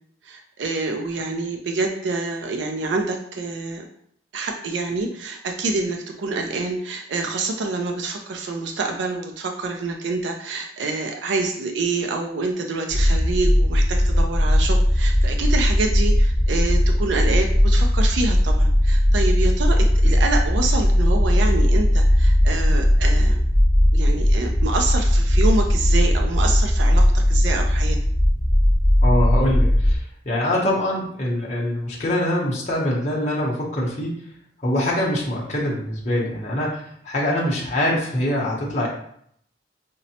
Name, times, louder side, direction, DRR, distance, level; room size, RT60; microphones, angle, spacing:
voice 1, 0.2-3.8 4.3-23.4 23.9-28.0, right 3 dB, 75° right, 3 dB, 0.4 m, -27 dB
sound 1, 12.9-30.0, equal, 5° left, 0.6 m, -18 dB
voice 2, 29.0-34.2 34.6-38.9, left 1 dB, 40° left, -4 dB, 0.7 m, -24 dB
5.1 x 2.0 x 2.8 m, 0.67 s
head